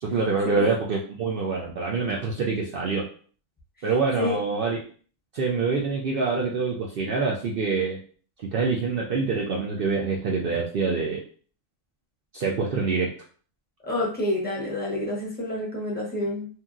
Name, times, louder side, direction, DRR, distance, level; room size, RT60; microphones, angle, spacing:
voice 1, 0.0-3.1 3.8-4.8 5.3-8.0 8.4-11.2 12.3-13.1, right 4 dB, 70° right, -2 dB, 0.5 m, -25 dB
voice 2, 13.8-16.5, left 1 dB, 10° left, -5 dB, 0.6 m, -28 dB
2.9 x 2.6 x 2.3 m, 0.43 s
omnidirectional pair, 1.5 m